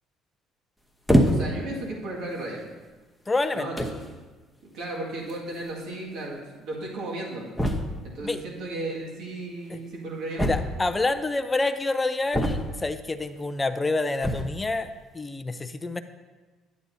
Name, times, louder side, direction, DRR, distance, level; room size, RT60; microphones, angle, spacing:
sound 1, 1.1-1.7 2.5-2.6 3.4-3.5 3.8-4.1 5.3-5.4 5.6-5.7 5.9-6.0 7.6-8.1 10.4-11.0 12.3-13.0 14.1-14.6, equal, ahead, 0.9 m, -24 dB
voice 1, 1.2-2.6 3.5-4.1 4.7-7.5 8.0-10.5, right 2 dB, 70° right, -3 dB, 2.0 m, -35 dB
voice 2, 3.3-3.7 8.2-8.4 9.7-9.8 10.4-14.9 15.1-16.0, left 2 dB, 20° left, 10 dB, 0.5 m, -27 dB
10.0 x 8.4 x 2.7 m, 1.3 s
supercardioid pair, 70°, 0 cm